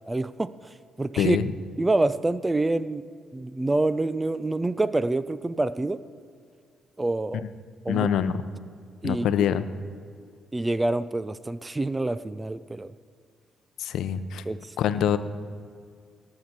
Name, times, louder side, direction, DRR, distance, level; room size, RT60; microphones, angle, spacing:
voice 1, 0.1-0.5 1.0-1.4 1.8-3.1 3.3-6.0 7.0-7.5 7.8-8.1 9.0-9.3 10.5-12.9 14.5-14.6, right 2 dB, 20° right, 16 dB, 0.4 m, -26 dB
voice 2, 1.2-1.5 7.9-8.4 9.0-9.7 13.8-14.4 14.8-15.2, left 9 dB, 80° left, 12 dB, 0.6 m, -24 dB
18.5 x 6.7 x 6.0 m, 2.1 s
cardioid pair, 90°, 0 cm